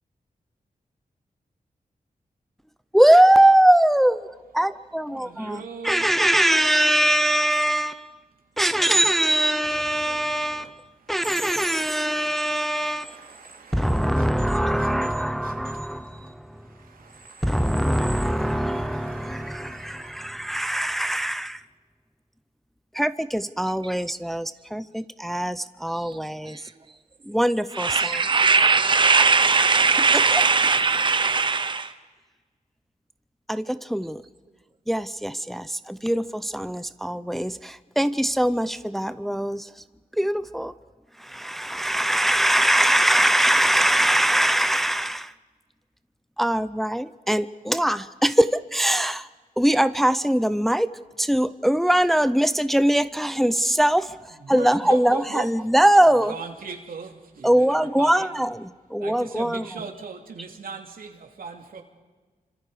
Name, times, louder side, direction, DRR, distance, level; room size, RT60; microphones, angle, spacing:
voice 1, 2.9-8.2 8.6-10.8 11.1-13.2 13.7-16.5 17.4-21.6 22.9-26.6 27.3-28.3 30.3-30.4 33.5-34.2 34.9-39.7 40.2-40.7 41.2-45.3 46.4-49.3 49.6-50.9 51.2-56.3 57.4-59.6, right 1 dB, ahead, 0.6 m, -22 dB
voice 2, 5.1-6.2 9.7-10.7 11.0-20.3 54.3-55.5 56.1-58.3 59.0-61.8, right 5 dB, 85° right, 2.7 m, -40 dB
voice 3, 27.7-31.9, right 4 dB, 35° right, 0.9 m, -20 dB
30.0 x 26.0 x 5.0 m
wide cardioid pair, 95°, 14 cm